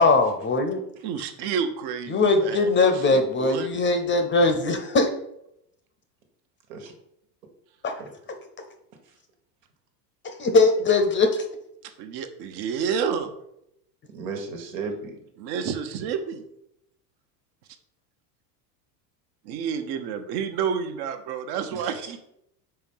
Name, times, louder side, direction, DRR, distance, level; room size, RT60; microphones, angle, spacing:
voice 1, 0.0-0.8 2.1-5.1 7.8-8.0 10.4-11.4, left 3 dB, 25° left, 6 dB, 0.7 m, -20 dB
voice 2, 1.0-3.7 11.8-13.3 15.4-16.4 19.4-22.2, right 7 dB, 50° right, 8 dB, 1.0 m, -30 dB
voice 3, 14.1-15.2 21.7-22.1, right 4 dB, 75° right, 3 dB, 1.7 m, -35 dB
4.6 x 4.5 x 5.5 m, 0.78 s
supercardioid pair, 120°, 49 cm